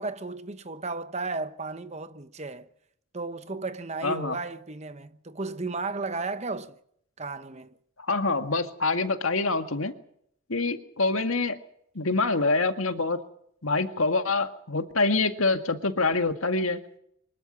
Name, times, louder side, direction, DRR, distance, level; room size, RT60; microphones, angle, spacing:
voice 1, 0.0-2.7 3.1-6.7 7.2-7.8, right 3 dB, 30° right, 1.0 m, -34 dB
voice 2, 4.0-4.4 8.1-9.9 10.5-11.6 12.0-13.2 13.6-16.8, left 3 dB, 75° left, 1.9 m, -25 dB
24.5 x 13.0 x 9.7 m
head